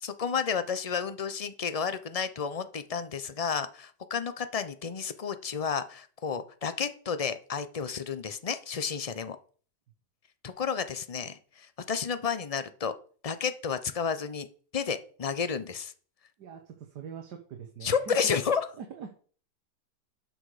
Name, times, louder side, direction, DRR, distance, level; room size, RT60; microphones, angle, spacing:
voice 1, 0.0-9.4 10.4-12.9 13.2-14.5 14.7-15.9 17.8-18.6, left 6 dB, 40° left, 12 dB, 0.5 m, -31 dB
voice 2, 16.4-18.4 18.8-19.1, right 6 dB, 75° right, 5 dB, 1.8 m, -43 dB
12.0 x 6.3 x 5.0 m, 0.44 s
omnidirectional pair, 1.8 m